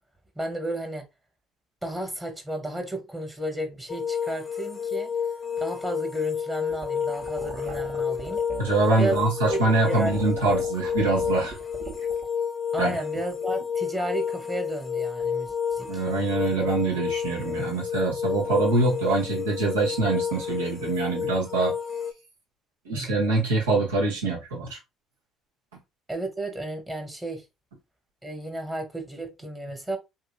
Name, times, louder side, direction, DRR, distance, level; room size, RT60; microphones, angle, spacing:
voice 1, 0.4-1.0 1.8-5.1 5.6-8.5 9.0-9.2 9.5-9.6 9.9-10.2 12.7-16.0 22.9-23.2 26.1-27.4 28.2-30.0, right 1 dB, 15° right, 1.0 m, -33 dB
sound 1, 3.9-22.1, left 7 dB, 40° left, 0.7 m, -30 dB
sound 2, 6.7-12.2, right 4 dB, 55° right, 1.1 m, -40 dB
voice 2, 8.6-11.6 12.8-13.0 15.9-21.7 22.9-24.8, right 3 dB, 90° right, 1.0 m, -24 dB
2.7 x 2.7 x 2.5 m
hypercardioid pair, 55°, 0 cm